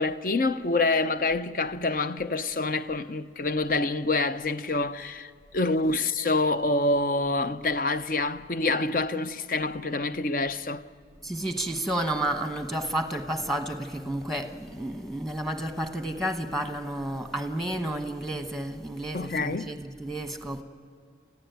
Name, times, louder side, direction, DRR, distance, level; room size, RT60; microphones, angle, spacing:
voice 1, 0.0-10.8 19.1-19.7, left 2 dB, 50° left, 0.7 m, -27 dB
voice 2, 11.2-20.6, right 1 dB, ahead, 1.2 m, -31 dB
28.0 x 15.5 x 9.3 m
head